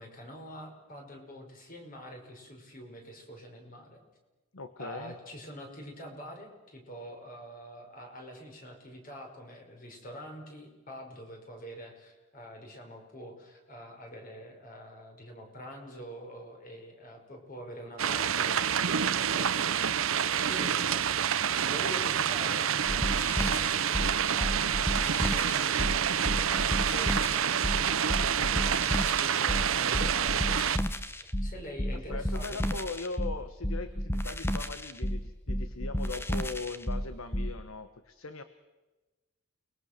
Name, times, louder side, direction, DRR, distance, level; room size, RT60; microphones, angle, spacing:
voice 1, 0.0-4.0 4.8-20.1 20.3-30.8 31.2-32.6, equal, 40° left, 2 dB, 5.2 m, -45 dB
voice 2, 4.5-5.1 32.1-38.4, left 3 dB, 75° left, 10 dB, 1.2 m, -40 dB
sound 1, 18.0-30.8, right 8 dB, 70° right, 0.8 m, -28 dB
sound 2, 22.9-37.6, equal, 10° left, 0.9 m, -32 dB
29.5 x 20.5 x 6.7 m, 1.2 s
head